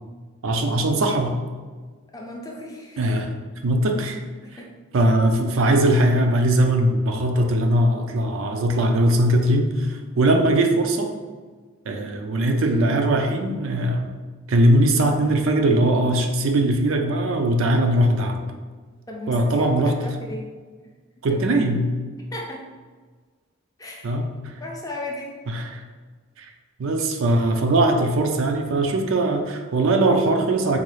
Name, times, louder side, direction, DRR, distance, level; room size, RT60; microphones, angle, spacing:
voice 1, 0.4-1.4 3.0-3.3 3.6-4.2 4.9-11.1 11.9-14.1 14.5-18.4 19.3-20.0 21.2-21.9 24.0-24.6 25.5-25.8 26.4-26.5 26.8-30.8, right 1 dB, 65° right, 4 dB, 0.4 m, -20 dB
voice 2, 2.1-3.1 4.4-4.7 11.9-12.1 19.1-19.4 19.8-20.5 21.3-21.4 22.3-22.6 23.8-24.2 24.6-25.4, left 1 dB, 15° left, -1 dB, 0.4 m, -35 dB
3.7 x 2.3 x 3.1 m, 1.4 s
head